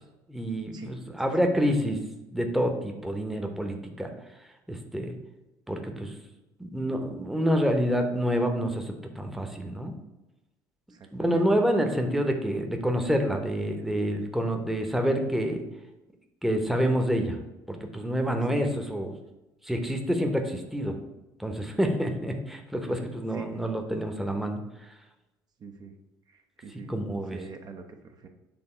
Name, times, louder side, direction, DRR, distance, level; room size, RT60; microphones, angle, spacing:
voice 1, 0.3-2.0 2.3-4.1 4.7-5.2 5.7-6.1 6.6-9.9 11.1-15.6 16.4-17.4 17.7-19.1 19.6-21.0 21.4-24.6 26.9-27.4, equal, ahead, 3 dB, 1.0 m, -27 dB
voice 2, 10.9-11.5 18.4-18.6 22.9-23.6 25.6-25.9 26.3-26.9 27.3-28.3, right 5 dB, 40° right, 3 dB, 0.8 m, -44 dB
6.9 x 3.4 x 4.4 m, 1.0 s
figure-of-eight pair, 55°, 11 cm